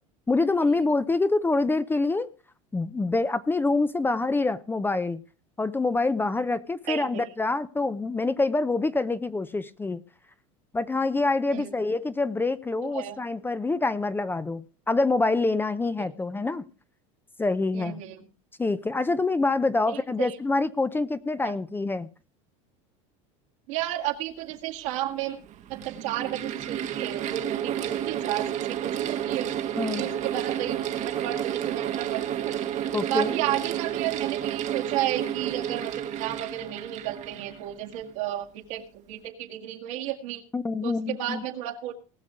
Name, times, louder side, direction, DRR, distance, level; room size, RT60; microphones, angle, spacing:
voice 1, 0.3-2.3 2.7-5.2 5.6-10.0 10.7-16.6 17.4-18.0 18.6-22.1 29.8-30.1 32.9-33.3 40.5-41.4, left 3 dB, 10° left, 14 dB, 0.6 m, -26 dB
voice 2, 6.9-7.2 11.5-11.7 12.8-13.2 17.7-18.2 19.9-20.4 21.4-21.6 23.7-25.4 25.7-29.5 30.0-30.8 31.0-32.6 33.1-40.4 40.8-41.9, right 13 dB, 75° right, 2 dB, 1.9 m, -33 dB
Mechanical fan, 24.5-24.6 25.4-38.1, right 10 dB, 45° right, 1.1 m, -31 dB
19.0 x 6.5 x 5.0 m, 0.36 s
supercardioid pair, 100°, 17 cm